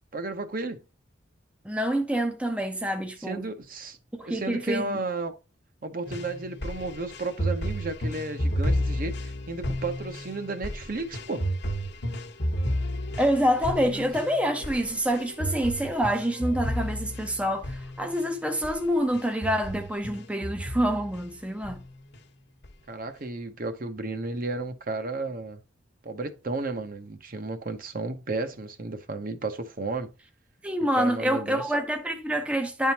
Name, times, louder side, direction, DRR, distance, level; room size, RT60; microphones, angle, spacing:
voice 1, 0.1-0.8 3.2-5.3 5.8-11.4 13.8-14.1 22.9-25.6 26.0-30.1 30.8-31.7, right 3 dB, 45° right, 0.9 m, -33 dB
voice 2, 1.6-3.5 4.1-5.0 13.2-21.8 30.6-32.9, equal, 5° right, 0.5 m, -27 dB
sound 1, 6.1-18.3 18.6-18.8 19.1-21.3 21.6-22.2 22.6-22.7, equal, 60° left, 1.0 m, -32 dB
10.5 x 3.7 x 2.8 m
head